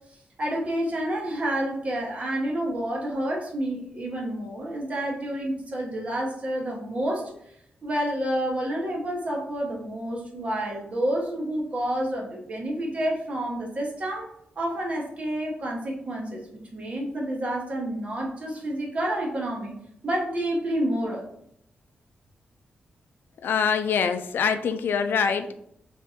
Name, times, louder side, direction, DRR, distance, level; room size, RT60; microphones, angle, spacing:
voice 1, 0.4-7.3 7.8-14.3 14.6-16.5 16.7-19.7 20.0-21.2, right 1 dB, 35° right, -1 dB, 1.1 m, -29 dB
voice 2, 23.4-25.5, left 6 dB, 80° left, 8 dB, 0.4 m, -24 dB
3.7 x 3.3 x 4.1 m, 0.72 s
wide cardioid pair, 155°, 4 cm